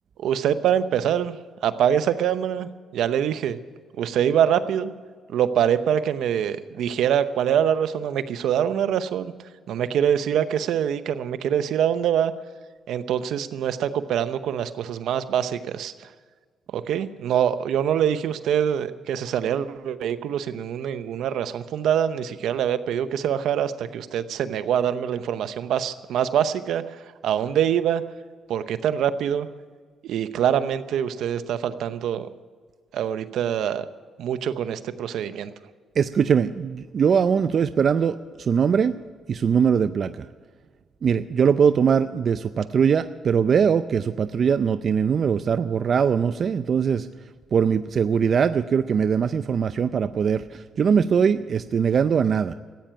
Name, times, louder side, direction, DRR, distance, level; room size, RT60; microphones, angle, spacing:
voice 1, 0.2-1.4 1.6-3.6 4.0-4.9 5.3-9.3 9.7-12.3 12.9-16.1 16.7-28.0 28.5-29.5 30.0-32.3 32.9-33.9 34.2-35.5, right 9 dB, 75° right, 12 dB, 0.8 m, -24 dB
voice 2, 36.0-39.0 39.3-40.3 41.0-47.1 47.5-52.5, right 7 dB, 50° right, 11 dB, 0.5 m, -21 dB
15.0 x 9.0 x 9.4 m, 1.6 s
cardioid pair, 90°, 0 cm